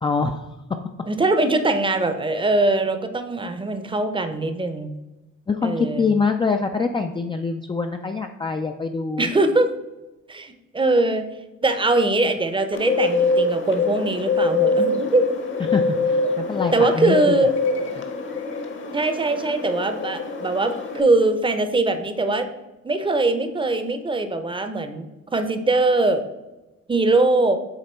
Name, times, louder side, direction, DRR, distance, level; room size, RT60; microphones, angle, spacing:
voice 1, 0.0-0.5 5.5-9.3 15.7-17.4, left 4 dB, 15° left, 4 dB, 0.3 m, -24 dB
voice 2, 1.1-4.9 5.6-6.1 9.2-9.7 10.3-11.2 11.6-15.2 16.7-17.5 18.9-22.5 22.8-25.1 25.3-26.2 26.9-27.6, right 2 dB, 15° right, 9 dB, 0.6 m, -21 dB
Bird, 12.7-21.0, left 3 dB, 40° left, 0.9 m, -24 dB
7.6 x 2.9 x 4.3 m, 1.1 s
cardioid pair, 90°, 30 cm